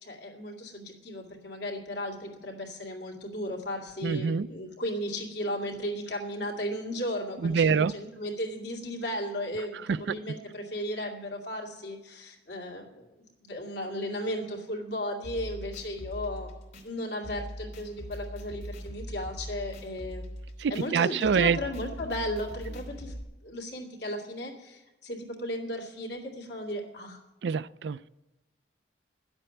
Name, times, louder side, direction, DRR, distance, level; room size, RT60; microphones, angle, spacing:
voice 1, 0.0-13.0 13.4-16.5 16.8-20.3 20.7-23.1 23.4-27.2, left 1 dB, 75° left, 0 dB, 2.4 m, -35 dB
voice 2, 4.0-4.5 7.4-7.9 9.7-10.2 20.6-21.6 27.4-28.1, right 6 dB, 75° right, 17 dB, 0.4 m, -26 dB
sound 1, 15.2-23.2, equal, 55° left, 2.6 m, -41 dB
10.5 x 7.9 x 9.1 m, 1.0 s
head